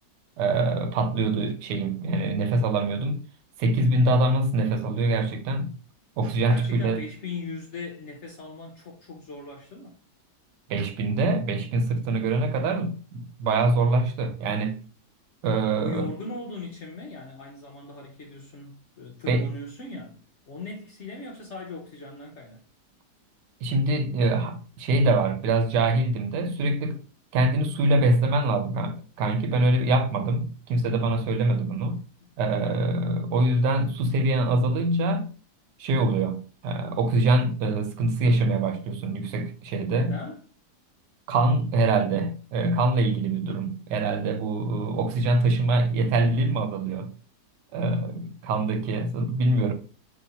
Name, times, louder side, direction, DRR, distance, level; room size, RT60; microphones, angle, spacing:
voice 1, 0.4-3.2 3.6-5.8 6.2-7.0 10.7-14.8 15.4-16.1 19.3-19.5 23.6-27.0 27.3-32.0 32.4-35.3 35.8-40.2 41.3-47.1 47.7-49.7, right 2 dB, 80° right, 1.3 m, -24 dB
voice 2, 6.5-10.0 15.8-22.6 39.9-40.4, left 3 dB, 60° left, 0.8 m, -39 dB
4.0 x 3.0 x 4.0 m
omnidirectional pair, 1.8 m